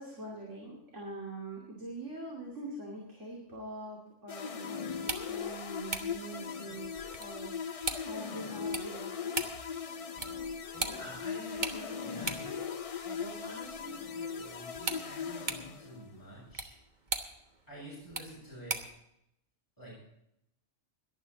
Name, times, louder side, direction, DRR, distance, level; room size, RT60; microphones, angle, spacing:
voice 1, 0.0-6.9 7.2-9.5, right 2 dB, 70° right, -2 dB, 3.0 m, -44 dB
sound 1, 4.3-16.2, left 6 dB, 40° left, 0.5 m, -39 dB
sound 2, 4.9-19.0, right 3 dB, 40° right, 1.3 m, -42 dB
voice 2, 10.7-12.6 13.0-16.8 17.7-18.8 19.8-19.9, right 1 dB, 15° left, -7 dB, 6.3 m, -47 dB
18.0 x 11.5 x 4.0 m, 0.80 s
omnidirectional pair, 1.3 m